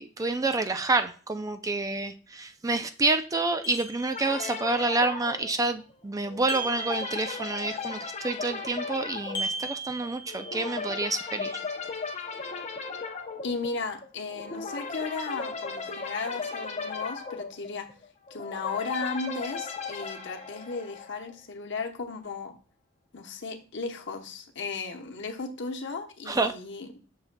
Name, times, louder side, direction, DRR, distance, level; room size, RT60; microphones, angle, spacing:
voice 1, 0.0-11.6 26.3-26.5, right 3 dB, 15° right, 0.4 m, -28 dB
sound 1, 3.6-4.6 6.5-7.8 9.3-10.9, right 2 dB, 20° left, 1.3 m, -37 dB
sound 2, 4.1-21.3, left 4 dB, 35° left, 0.7 m, -37 dB
voice 2, 13.4-17.9 18.3-22.5 23.1-26.9, left 4 dB, 65° left, 1.0 m, -35 dB
7.2 x 6.5 x 2.2 m
head